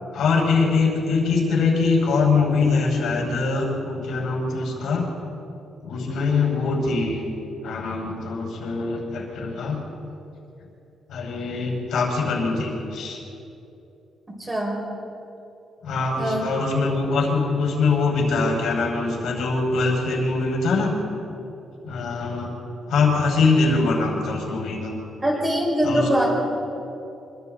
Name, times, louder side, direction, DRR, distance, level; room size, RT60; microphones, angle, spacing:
voice 1, 0.1-5.1 5.8-7.2 7.6-9.8 11.1-13.2 15.8-20.9 21.8-22.5 22.9-25.0 25.8-26.1, left 4 dB, 70° left, -1 dB, 5.7 m, -23 dB
voice 2, 14.4-14.8 16.2-16.5 25.2-26.3, equal, 15° right, -2 dB, 5.4 m, -22 dB
27.0 x 23.5 x 4.1 m, 2.9 s
cardioid pair, 155°, 0 cm